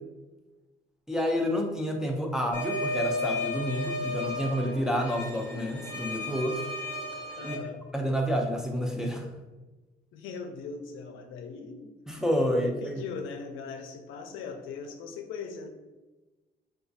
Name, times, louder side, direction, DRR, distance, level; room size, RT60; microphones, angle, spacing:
voice 1, 1.1-6.7 7.4-7.6 7.9-9.3 12.1-13.0, equal, 5° right, 2 dB, 0.3 m, -29 dB
sound 1, 2.5-7.5, left 2 dB, 25° right, 0.7 m, -34 dB
voice 2, 7.4-7.8 10.1-11.9 12.5-15.7, left 5 dB, 85° left, 4 dB, 0.4 m, -40 dB
2.3 x 2.3 x 2.6 m, 1.1 s
cardioid pair, 90°, 20 cm